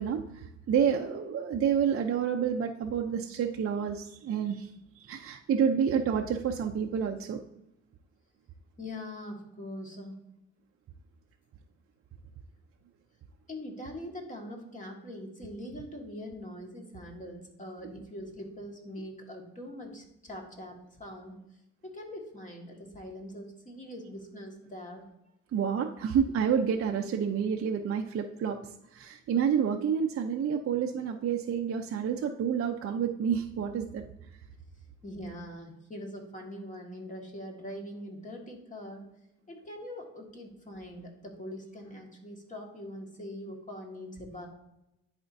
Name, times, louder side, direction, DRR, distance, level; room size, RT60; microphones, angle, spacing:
voice 1, 0.0-4.7 5.0-7.4 17.8-18.0 25.5-28.6 28.9-34.0, right 7 dB, 50° right, 3 dB, 0.6 m, -29 dB
voice 2, 8.8-10.2 13.5-21.4 21.8-25.0 35.0-39.1 39.5-44.5, left 1 dB, 25° left, 1 dB, 1.7 m, -42 dB
10.5 x 4.3 x 2.6 m, 0.86 s
cardioid pair, 90°, 30 cm